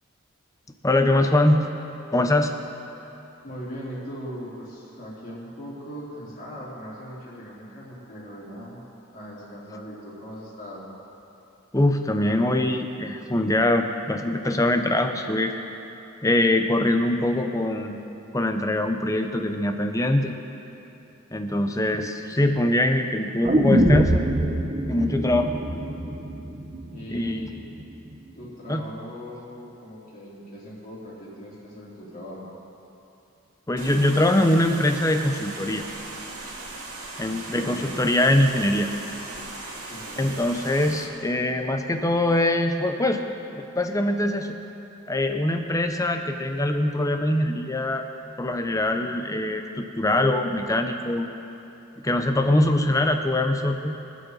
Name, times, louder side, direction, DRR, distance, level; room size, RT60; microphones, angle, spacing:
voice 1, 0.8-1.6 2.1-2.5 11.7-15.5 16.2-18.0 18.3-20.4 21.3-24.3 24.9-25.5 27.1-27.4 28.7-28.8 33.7-35.9 37.2-38.9 40.2-43.2 43.5-44.6 45.1-48.0 48.4-51.3 52.0-54.0, left 1 dB, 15° left, 5 dB, 0.7 m, -23 dB
voice 2, 3.4-8.8 9.1-10.9 26.9-27.6 28.3-32.5 37.3-37.9 39.9-40.3 52.3-52.7, equal, 40° left, -7 dB, 3.5 m, -39 dB
sound 1, 23.4-27.5 27.8-27.9, right 1 dB, 30° right, 0.6 m, -24 dB
sound 2, 33.8-41.1, right 2 dB, 90° right, 2.1 m, -38 dB
24.0 x 8.0 x 4.0 m, 2.8 s
head